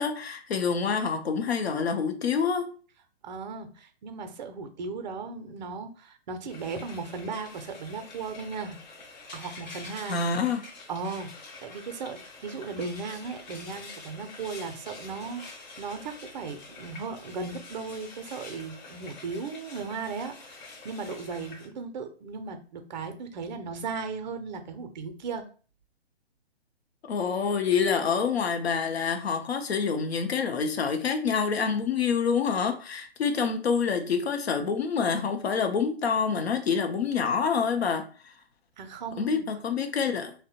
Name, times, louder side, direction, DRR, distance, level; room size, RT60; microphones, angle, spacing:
voice 1, 0.0-2.7 10.0-10.6 27.0-38.3 39.2-40.3, left 6 dB, 75° left, 0.6 m, -27 dB
voice 2, 3.2-8.8 9.3-10.2 10.9-25.4 38.8-39.5, right 4 dB, 45° right, 0.4 m, -36 dB
Frying (food), 6.5-21.7, left 3 dB, 45° left, 0.8 m, -46 dB
2.6 x 2.1 x 2.7 m
figure-of-eight pair, 130°, 32 cm